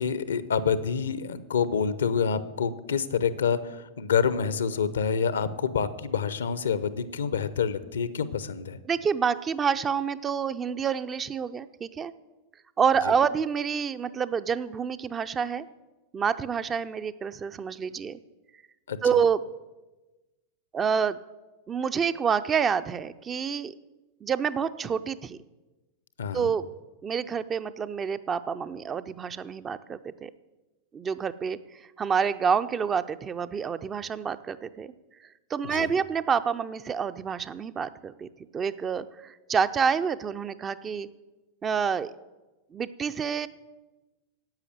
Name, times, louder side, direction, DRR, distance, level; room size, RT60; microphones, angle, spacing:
voice 1, 0.0-8.8 18.9-19.0 26.2-26.5 35.6-35.9, left 6 dB, 65° left, 16 dB, 0.7 m, -27 dB
voice 2, 8.9-12.1 12.8-15.7 16.1-18.2 19.0-19.4 20.7-21.2 21.7-23.7 24.2-25.4 26.3-26.7 27.0-30.3 30.9-31.6 32.0-34.9 35.5-38.3 38.5-41.1 41.6-42.1 42.7-43.5, right 6 dB, 20° right, 12 dB, 0.5 m, -28 dB
10.5 x 8.4 x 8.3 m, 1.1 s
figure-of-eight pair, 90°, 0 cm